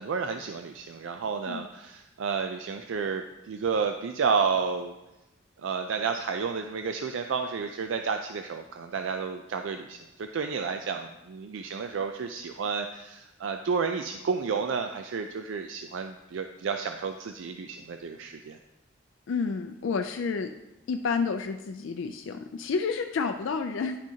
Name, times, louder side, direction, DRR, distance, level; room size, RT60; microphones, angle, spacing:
voice 1, 0.0-4.9 5.6-18.6, right 5 dB, 80° right, 6 dB, 0.4 m, -31 dB
voice 2, 19.3-20.5 20.9-24.0, left 5 dB, 75° left, 5 dB, 0.4 m, -30 dB
10.0 x 6.2 x 2.8 m, 0.97 s
head